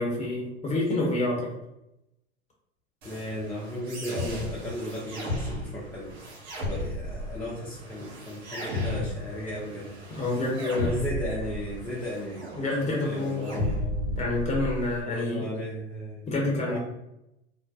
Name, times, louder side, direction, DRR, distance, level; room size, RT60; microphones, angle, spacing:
voice 1, 0.0-1.5 10.1-10.9 12.6-13.5 14.2-15.4 16.3-16.8, left 2 dB, 20° left, -2 dB, 1.0 m, -28 dB
voice 2, 3.0-6.1 6.6-9.9 10.8-14.2 15.1-16.8, equal, 5° left, -8 dB, 0.5 m, -35 dB
sound 1, 3.0-15.0, left 1 dB, 70° right, 1.0 m, -34 dB
2.3 x 2.1 x 2.6 m, 0.86 s
hypercardioid pair, 90°, 34 cm